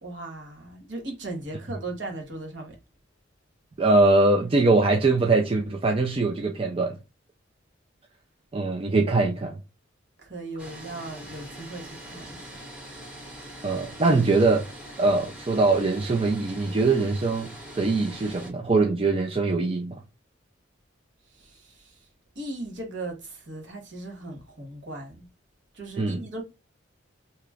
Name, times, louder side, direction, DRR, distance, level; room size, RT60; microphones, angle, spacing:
voice 1, 0.0-2.8 10.2-12.6 21.3-22.0 22.3-25.3 25.7-26.4, right 2 dB, 65° right, 1.2 m, -38 dB
voice 2, 3.8-7.0 8.5-9.6 13.6-14.7 15.0-20.0 26.0-26.2, right 3 dB, 30° right, 0.4 m, -22 dB
sound 1, 10.6-18.5, right 1 dB, 5° right, 1.1 m, -43 dB
2.9 x 2.4 x 3.4 m
head